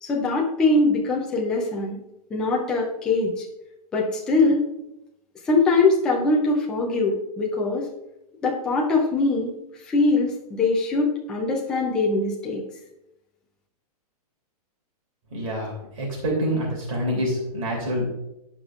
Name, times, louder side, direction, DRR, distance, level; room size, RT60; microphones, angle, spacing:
voice 1, 0.0-2.0 2.3-3.5 3.9-4.6 5.5-7.8 8.4-9.5 9.9-12.6, left 3 dB, 5° left, -2 dB, 0.3 m, -22 dB
voice 2, 15.3-18.1, equal, 55° right, -2 dB, 2.9 m, -26 dB
14.5 x 5.1 x 2.4 m, 0.87 s
hypercardioid pair, 175°, 20 cm